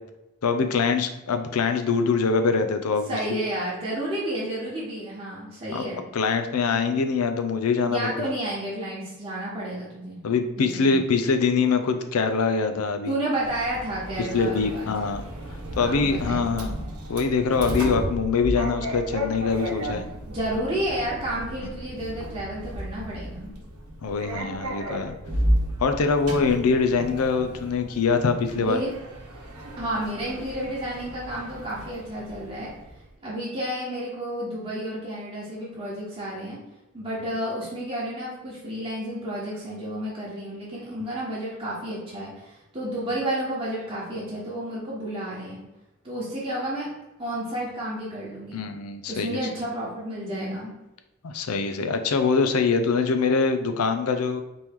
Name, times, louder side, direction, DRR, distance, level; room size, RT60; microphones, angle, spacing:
voice 1, 0.4-3.2 5.7-5.8 6.1-8.3 10.2-13.1 14.2-15.2 15.8-16.8 17.1-20.0 24.0-25.1 25.8-28.8 48.5-49.4 51.2-54.4, left 4 dB, 75° left, 7 dB, 0.5 m, -24 dB
voice 2, 3.1-6.0 7.9-10.2 10.6-11.0 13.1-14.9 15.8-16.8 19.8-20.0 20.3-23.5 28.6-28.9 29.8-32.7 33.2-36.6 36.9-45.6 46.0-46.9 47.2-48.7 49.1-50.7, right 1 dB, 25° right, -8 dB, 1.2 m, -31 dB
Sliding door, 13.4-33.0, equal, 80° right, 0.9 m, -33 dB
4.3 x 3.1 x 3.6 m, 0.99 s
head